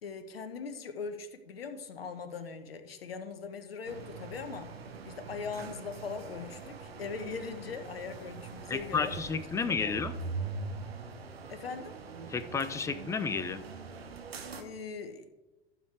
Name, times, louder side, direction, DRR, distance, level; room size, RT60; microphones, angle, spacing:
voice 1, 0.0-4.7 5.0-9.1 9.7-10.0 11.5-11.9 14.6-15.3, left 5 dB, 70° left, 10 dB, 1.1 m, -40 dB
sound 1, 3.8-14.6, right 4 dB, 75° right, 1.1 m, -43 dB
voice 2, 8.7-10.1 12.3-13.6, left 5 dB, 10° left, 14 dB, 0.4 m, -32 dB
15.0 x 6.2 x 3.4 m, 1.1 s
figure-of-eight pair, 85°, 31 cm